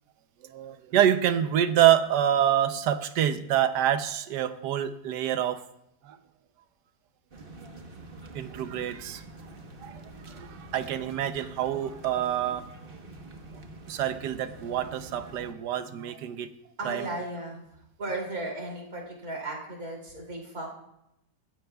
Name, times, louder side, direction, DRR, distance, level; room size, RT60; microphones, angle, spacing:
voice 1, 0.5-5.6 6.0-6.2 8.3-9.2 9.8-12.7 13.9-16.5 16.8-17.1, right 10 dB, 80° right, 10 dB, 1.3 m, -26 dB
sound 1, 7.3-15.5, right 2 dB, 35° right, 1.2 m, -46 dB
voice 2, 16.8-20.8, right 2 dB, 55° right, -1 dB, 3.4 m, -36 dB
22.0 x 15.5 x 2.3 m, 0.81 s
omnidirectional pair, 1.8 m